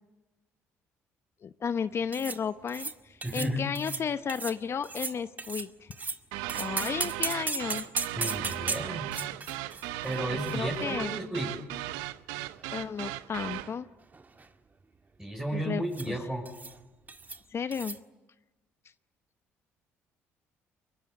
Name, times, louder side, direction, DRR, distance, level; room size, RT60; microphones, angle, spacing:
voice 1, 1.4-5.9 6.6-7.9 10.5-11.2 12.7-13.9 15.5-16.2 17.5-18.0, left 6 dB, 45° left, 11 dB, 0.9 m, -33 dB
sound 1, 2.1-2.4 2.7-2.9 3.2-3.5 3.7-4.0 4.3-4.6 4.8-6.2 6.5-11.2 11.4-11.5 12.3-13.2 13.5-13.7 14.0-14.5 15.9-16.1 16.4-16.8 17.1-17.4 17.7-18.0, right 3 dB, 30° right, 1.9 m, -37 dB
voice 2, 3.2-3.6 8.1-9.1 10.0-11.5 15.2-16.5, right 1 dB, 10° right, -1 dB, 6.1 m, -33 dB
sound 2, 6.3-13.7, right 16 dB, 90° right, 0.8 m, -36 dB
23.5 x 21.5 x 9.9 m, 1.1 s
supercardioid pair, 70°, 6 cm